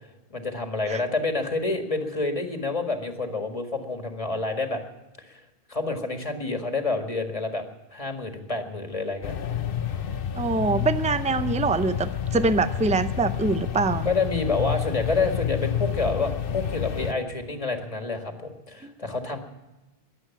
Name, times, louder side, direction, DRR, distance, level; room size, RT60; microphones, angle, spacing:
voice 1, 0.3-4.8 5.2-5.4 5.7-7.6 7.9-9.3 14.1-19.4, left 3 dB, 35° left, 4 dB, 1.9 m, -28 dB
Industrial Ambience.R, 9.2-17.1, left 9 dB, 65° left, 0.9 m, -29 dB
voice 2, 10.3-14.1 18.8-18.9, right 3 dB, 10° right, 12 dB, 0.4 m, -24 dB
22.0 x 8.2 x 7.2 m, 1.0 s
omnidirectional pair, 1.0 m